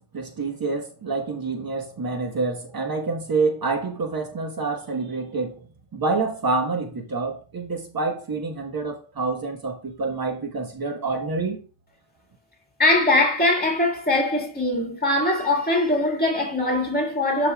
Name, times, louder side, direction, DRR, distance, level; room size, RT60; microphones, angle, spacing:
voice 1, 0.1-5.5 5.9-11.6, right 3 dB, 50° right, 1.3 m, -27 dB
voice 2, 12.8-17.5, left 2 dB, 20° left, 2.1 m, -21 dB
12.0 x 4.1 x 2.3 m
wide cardioid pair, 135°, 46 cm